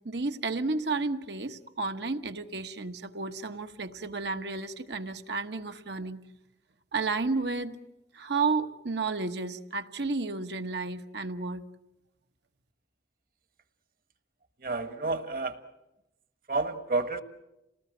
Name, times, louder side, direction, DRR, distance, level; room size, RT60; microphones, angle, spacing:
voice 1, 0.0-6.2 6.9-7.8 8.1-11.6, right 3 dB, 75° right, 8 dB, 1.2 m, -32 dB
voice 2, 14.6-15.6 16.5-17.2, right 3 dB, 50° right, 10 dB, 1.4 m, -30 dB
28.5 x 19.0 x 7.9 m, 0.96 s
head